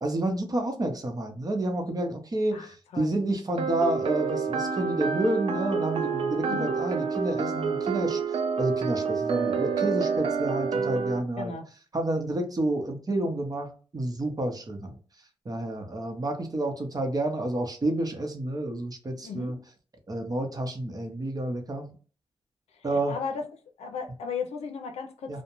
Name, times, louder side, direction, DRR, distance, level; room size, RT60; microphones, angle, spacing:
voice 1, 0.0-8.2 8.6-11.5 11.9-14.9 15.4-19.6 20.1-21.9 22.8-23.2 25.3-25.4, right 1 dB, 35° right, 0.8 m, -29 dB
voice 2, 2.5-3.2 6.5-6.8 11.4-11.7 19.2-19.6 23.1-23.4 23.8-25.4, left 5 dB, 85° left, 0.5 m, -35 dB
sound 1, 3.6-11.2, right 5 dB, 65° right, 0.4 m, -28 dB
2.3 x 2.1 x 2.9 m
cardioid pair, 50°, 11 cm